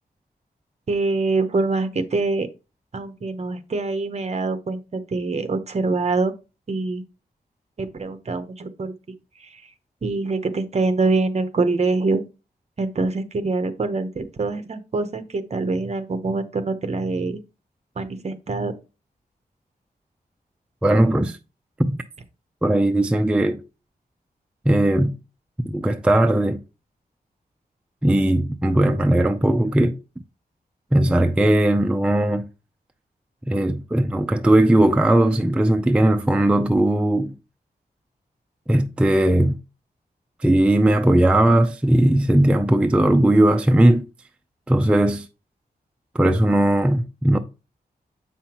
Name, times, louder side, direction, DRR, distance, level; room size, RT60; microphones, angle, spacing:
voice 1, 0.9-2.5 2.9-6.3 6.7-7.0 7.8-8.9 9.4-9.6 10.0-12.2 12.8-17.4 18.0-18.7, right 3 dB, 40° right, 0.8 m, -24 dB
voice 2, 20.8-21.4 21.8-22.0 22.6-23.6 24.7-25.2 25.6-26.6 28.0-30.0 30.9-32.5 33.5-37.3 38.7-39.6 40.4-44.1 44.7-45.3 46.1-47.4, right 1 dB, 5° right, 0.3 m, -18 dB
7.7 x 5.6 x 2.9 m
wide cardioid pair, 175°, 16 cm